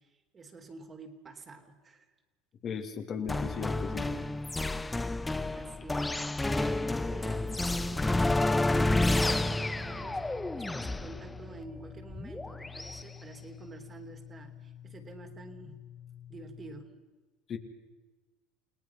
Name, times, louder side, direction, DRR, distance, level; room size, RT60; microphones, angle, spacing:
voice 1, 0.0-2.1 5.5-15.8 16.3-16.9, right 3 dB, 30° right, 4 dB, 3.3 m, -49 dB
voice 2, 2.6-4.1 17.5-17.6, left 6 dB, 40° left, 4 dB, 2.6 m, -36 dB
sound 1, 3.3-13.0, left 2 dB, 10° left, 0.9 m, -30 dB
sound 2, 7.2-16.8, left 10 dB, 75° left, 4.2 m, -50 dB
29.5 x 18.5 x 5.9 m, 1.2 s
supercardioid pair, 100°, 0 cm